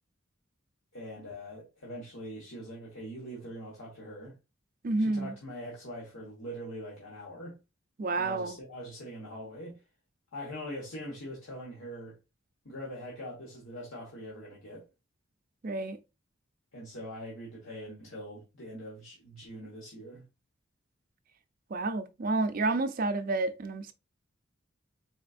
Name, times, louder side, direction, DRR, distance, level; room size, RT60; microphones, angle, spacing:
voice 1, 0.9-4.4 5.0-7.6 8.1-9.8 10.3-12.2 12.6-14.8 16.7-20.2, equal, 80° left, 1.4 m, -43 dB
voice 2, 4.8-5.3 8.0-8.6 15.6-16.0 21.7-23.9, right 2 dB, 45° right, 0.4 m, -30 dB
4.2 x 3.9 x 2.5 m
head